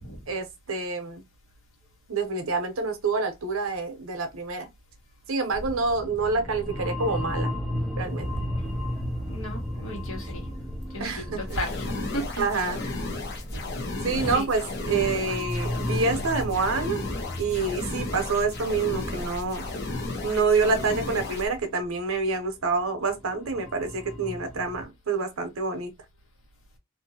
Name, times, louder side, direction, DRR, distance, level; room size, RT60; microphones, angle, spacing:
voice 1, 0.3-1.2 2.1-4.7 5.3-7.5 8.0-8.3 11.0-11.6 12.4-12.8 14.0-17.0 17.4-19.7 20.2-25.9, right 4 dB, 75° right, 0.8 m, -27 dB
sound 1, 5.5-24.8, left 1 dB, 5° left, 0.5 m, -35 dB
voice 2, 9.3-10.5 10.9-12.3 12.8-12.9 13.5-13.6 14.2-14.5 14.9-15.1, equal, 70° left, 1.4 m, -34 dB
sound 2, 11.5-21.5, left 2 dB, 50° left, 0.8 m, -34 dB
2.6 x 2.6 x 2.7 m
head